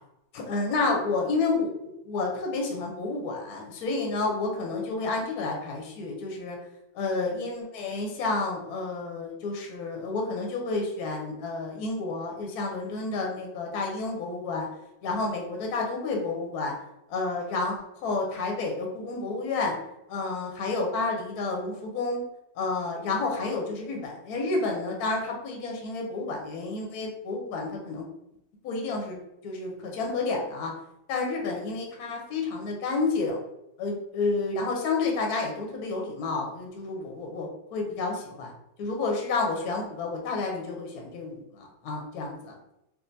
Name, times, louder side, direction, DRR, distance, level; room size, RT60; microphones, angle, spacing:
voice 1, 0.3-6.6 6.9-14.7 15.0-16.7 17.1-19.8 20.1-22.2 22.6-28.1 28.6-30.7 31.1-33.4 33.8-38.5 38.8-42.5, left 3 dB, 65° left, 0 dB, 1.1 m, -30 dB
3.6 x 2.5 x 2.6 m, 0.86 s
omnidirectional pair, 2.0 m